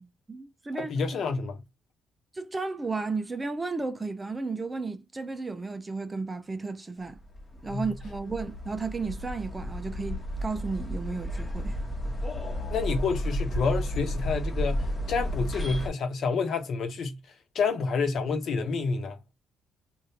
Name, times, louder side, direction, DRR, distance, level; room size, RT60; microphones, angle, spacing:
voice 1, 0.0-0.9 2.3-7.2 7.6-11.8, right 3 dB, 20° right, 0.5 m, -33 dB
voice 2, 0.8-1.6 7.7-7.9 12.7-17.2 17.5-19.2, left 4 dB, 65° left, 1.0 m, -29 dB
sound 1, 7.1-15.9, equal, 25° left, 1.1 m, -32 dB
3.5 x 2.5 x 2.8 m
cardioid pair, 90°, 0 cm